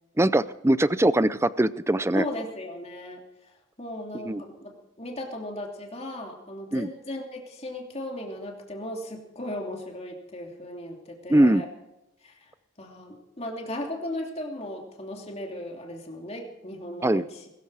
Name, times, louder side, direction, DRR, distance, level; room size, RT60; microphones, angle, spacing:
voice 1, 0.2-2.2 4.2-4.4 6.7-6.9 11.3-11.6 17.0-17.2, right 1 dB, 10° right, 16 dB, 0.5 m, -21 dB
voice 2, 2.1-3.2 3.8-11.7 12.2-12.5 12.8-17.4, left 1 dB, 30° left, 1 dB, 2.9 m, -36 dB
21.5 x 13.5 x 4.9 m, 0.93 s
head